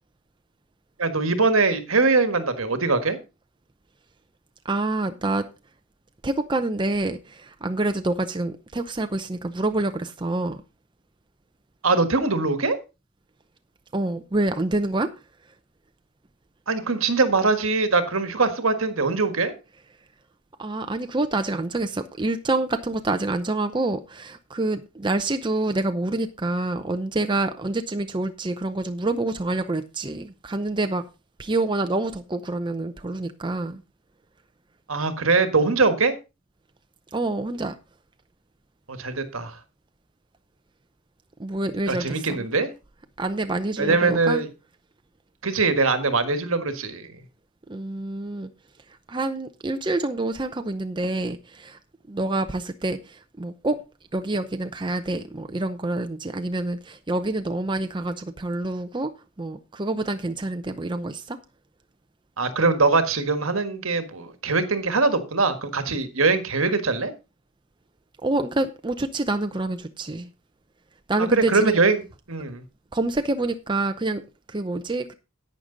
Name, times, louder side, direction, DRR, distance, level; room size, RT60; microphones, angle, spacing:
voice 1, 1.0-3.2 11.8-12.8 16.7-19.5 34.9-36.2 38.9-39.6 41.9-42.7 43.8-44.5 45.4-47.2 62.4-67.1 71.3-72.0 72.3-72.6, right 3 dB, 70° right, 1.6 m, -22 dB
voice 2, 4.6-5.5 6.2-10.6 13.9-15.1 20.6-31.0 31.4-33.8 37.1-37.7 41.4-42.5 43.2-44.4 47.7-48.5 48.9-51.8 52.1-53.8 54.1-59.1 59.4-61.4 68.2-70.3 71.1-71.8 72.9-74.2 74.5-75.1, right 2 dB, 20° right, 0.6 m, -27 dB
11.5 x 8.9 x 3.9 m
head